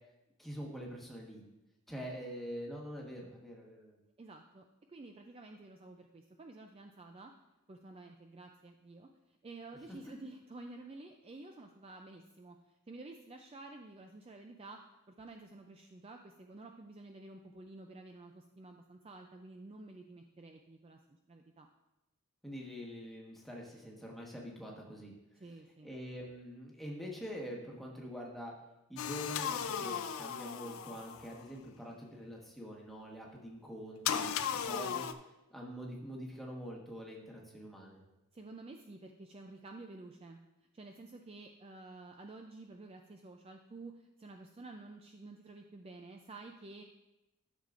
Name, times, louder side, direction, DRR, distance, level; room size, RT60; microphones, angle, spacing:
voice 1, 0.4-1.4 1.9-4.0 22.4-25.1 25.8-28.5 28.9-35.1 35.5-38.0, equal, ahead, -2 dB, 1.2 m, -45 dB
voice 2, 4.2-7.3 7.7-9.1 9.4-14.8 15.2-21.0 21.3-21.7 25.4-25.9 38.3-40.4 40.7-46.8, right 2 dB, 25° right, 4 dB, 0.4 m, -51 dB
sound 1, 29.0-31.4 34.1-35.1, left 8 dB, 65° left, 0.4 m, -36 dB
12.5 x 6.5 x 2.5 m, 0.95 s
head